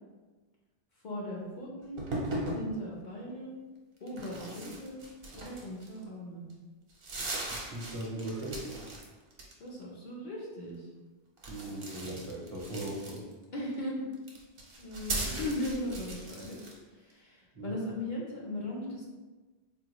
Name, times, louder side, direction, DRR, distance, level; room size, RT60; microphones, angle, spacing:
voice 1, 1.0-2.0 2.5-3.5 4.0-5.0 5.3-6.4 9.6-10.9 13.5-14.0 14.8-16.6 17.0-19.1, left 1 dB, 50° left, -4 dB, 0.8 m, -38 dB
sound 1, 2.0-2.7 4.1-6.0 6.5-6.6 6.9-9.0 9.3-9.8 11.4-13.4 14.1-16.8, right 2 dB, 65° right, 0.9 m, -38 dB
voice 2, 7.7-8.8 11.5-13.2 17.6-17.7, right 1 dB, 40° right, -6 dB, 0.6 m, -38 dB
3.7 x 2.1 x 2.9 m, 1.3 s
omnidirectional pair, 1.0 m